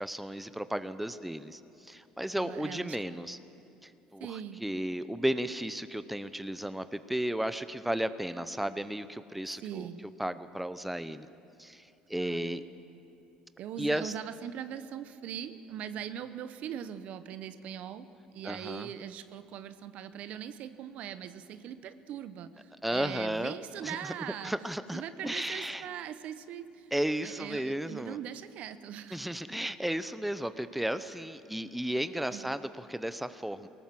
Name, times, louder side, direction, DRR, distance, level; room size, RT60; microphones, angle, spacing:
voice 1, 0.0-3.4 3.8-9.9 10.2-11.3 11.6-12.6 13.8-14.1 18.4-18.9 22.8-24.1 24.4-25.9 26.9-28.2 29.1-33.7, right 1 dB, 5° right, 12 dB, 0.7 m, -34 dB
voice 2, 2.3-3.3 4.2-4.6 9.6-10.0 12.2-12.6 13.6-18.1 18.3-24.5 24.9-26.8 27.2-29.2 32.3-32.5, right 9 dB, 65° right, 12 dB, 0.9 m, -41 dB
21.0 x 18.0 x 7.7 m, 2.8 s
supercardioid pair, 85°, 3 cm